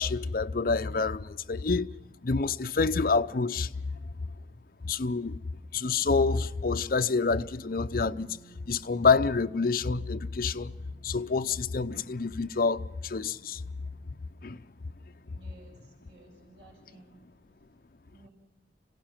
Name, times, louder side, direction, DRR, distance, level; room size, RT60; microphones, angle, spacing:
voice 1, 0.0-1.9 2.2-3.9 4.8-5.4 5.7-8.4 8.7-10.7 11.0-13.6 14.4-14.6, left 4 dB, 55° left, 0.6 m, -27 dB
sound 1, 7.7-17.5, right 4 dB, 5° left, 7.7 m, -60 dB
voice 2, 15.3-17.2 18.1-18.3, right 2 dB, 80° right, 6.6 m, -55 dB
26.5 x 16.5 x 5.9 m
head